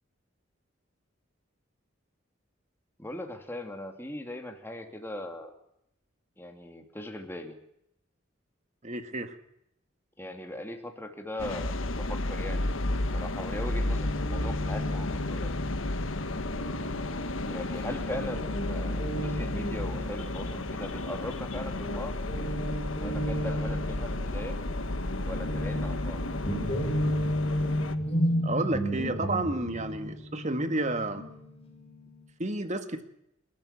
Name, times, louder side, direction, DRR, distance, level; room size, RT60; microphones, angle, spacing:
voice 1, 3.0-5.5 6.4-7.6 10.2-12.7 13.0-15.5 17.4-22.2 22.9-24.6 25.3-26.2, left 1 dB, 10° left, 4 dB, 2.8 m, -39 dB
voice 2, 8.8-9.4 28.4-31.2 32.4-33.0, right 2 dB, 35° right, 8 dB, 2.0 m, -31 dB
sound 1, 11.4-27.9, left 2 dB, 90° left, 1.5 m, -32 dB
Guitar, 13.8-21.5 21.8-32.2, equal, 30° left, 4.3 m, -34 dB
29.0 x 13.5 x 7.2 m, 0.77 s
head